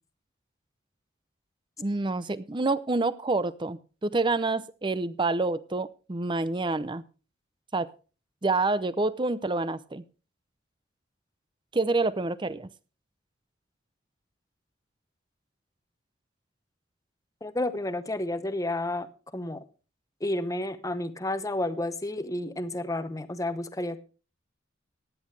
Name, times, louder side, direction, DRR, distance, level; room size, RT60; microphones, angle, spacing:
voice 1, 1.8-7.0 7.7-7.9 8.4-10.0 11.7-12.7, right 3 dB, 25° right, 16 dB, 0.6 m, -27 dB
voice 2, 17.4-19.1 19.3-19.6 20.2-24.0, left 1 dB, 15° left, 11 dB, 0.9 m, -31 dB
16.0 x 10.5 x 3.3 m, 0.35 s
head